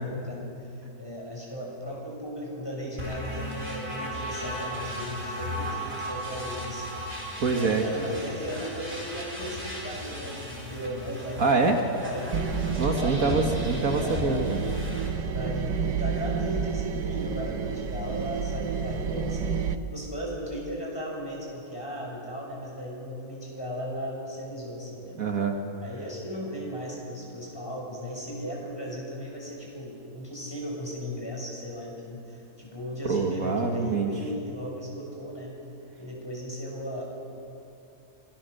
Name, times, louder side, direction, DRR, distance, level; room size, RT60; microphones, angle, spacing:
voice 1, 0.0-7.0 7.5-12.3 12.9-13.7 14.0-14.5 15.3-19.6 19.9-25.2 25.8-35.5 36.0-37.0, equal, 15° left, -2 dB, 6.1 m, -36 dB
sound 1, 3.0-15.1, equal, 40° right, 4.8 m, -36 dB
voice 2, 7.4-7.8 11.4-11.8 12.8-14.6 25.2-25.6 33.0-34.1, right 4 dB, 65° right, 3 dB, 1.8 m, -25 dB
sound 2, 12.3-19.8, right 6 dB, 85° right, 1.5 m, -30 dB
26.0 x 20.0 x 6.6 m, 2.7 s
omnidirectional pair, 1.6 m